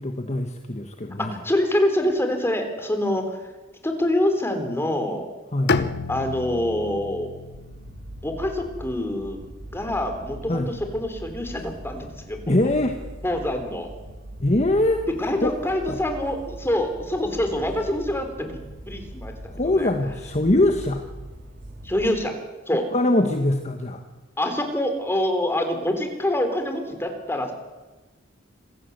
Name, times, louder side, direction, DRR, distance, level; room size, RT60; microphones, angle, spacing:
voice 1, 0.0-1.4 5.5-5.8 10.5-10.7 12.5-13.0 14.4-15.1 15.4-15.6 15.9-16.0 19.5-21.0 22.7-24.0, left 1 dB, 35° left, 5 dB, 1.4 m, -23 dB
voice 2, 1.2-3.5 3.8-5.3 6.1-7.3 8.2-9.4 9.7-12.4 13.2-13.9 15.2-18.6 18.9-19.9 21.8-22.3 22.7-22.9 24.4-27.5, left 1 dB, 10° left, 5 dB, 3.6 m, -25 dB
Bowed string instrument, 5.7-9.6, left 4 dB, 55° left, 0.9 m, -31 dB
sound 1, 7.5-22.1, right 1 dB, 65° right, 5.3 m, -41 dB
26.5 x 15.5 x 8.1 m, 1.2 s
head